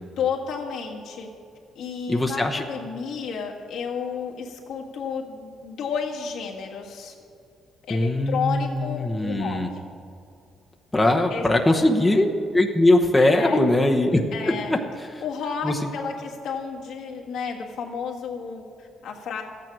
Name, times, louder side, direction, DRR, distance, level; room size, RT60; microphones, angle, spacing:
voice 1, 0.2-1.3 1.8-7.1 7.8-9.9 11.3-11.5 11.7-11.8 13.2-13.6 14.3-14.8 15.2-19.4, left 6 dB, 80° left, -1 dB, 1.6 m, -32 dB
voice 2, 2.1-2.6 7.9-9.7 10.9-14.8 15.6-15.7, left 1 dB, 10° left, 2 dB, 1.0 m, -21 dB
13.0 x 9.1 x 6.1 m, 2.4 s
cardioid pair, 90°, 0 cm